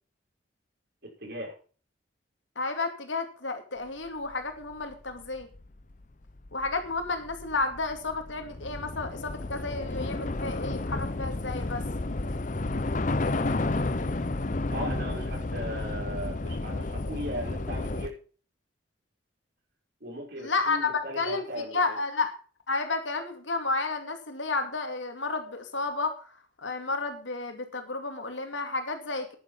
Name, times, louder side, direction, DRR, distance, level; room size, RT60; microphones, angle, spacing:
voice 1, 1.2-1.5 14.7-18.1 20.0-22.0, equal, 55° right, -1 dB, 5.6 m, -37 dB
voice 2, 2.6-5.5 6.5-11.8 20.4-22.3 22.7-29.4, left 3 dB, 90° left, 6 dB, 2.6 m, -31 dB
Train / Subway metro underground, 4.7-4.8 5.1-18.1, left 2 dB, 45° left, 0.8 m, -32 dB
10.5 x 9.9 x 5.9 m, 0.39 s
head